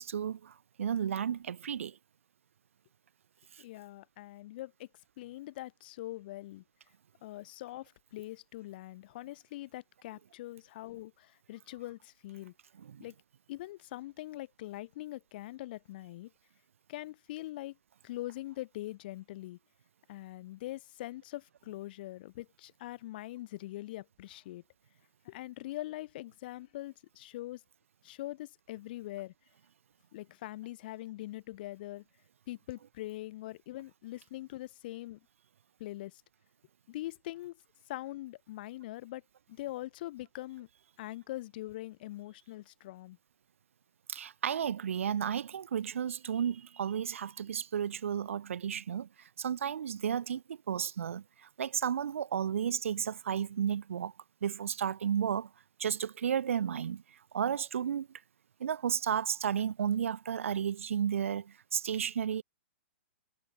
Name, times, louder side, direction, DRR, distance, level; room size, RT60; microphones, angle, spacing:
voice 1, 0.0-2.0 3.5-3.6 12.8-13.0 44.1-54.1 54.4-55.5 55.8-58.1 58.6-62.4, right 8 dB, 85° right, 0.5 m, -33 dB
voice 2, 3.6-4.9 5.2-6.6 7.2-12.5 13.0-13.1 13.5-16.3 16.9-17.8 18.0-19.6 20.1-24.6 25.2-27.6 28.0-29.3 30.1-32.0 32.5-35.2 35.8-36.2 36.9-37.6 37.9-39.2 39.5-40.7 41.0-43.2, left 16 dB, 45° left, 1.4 m, -43 dB
hypercardioid pair, 150°, 7 cm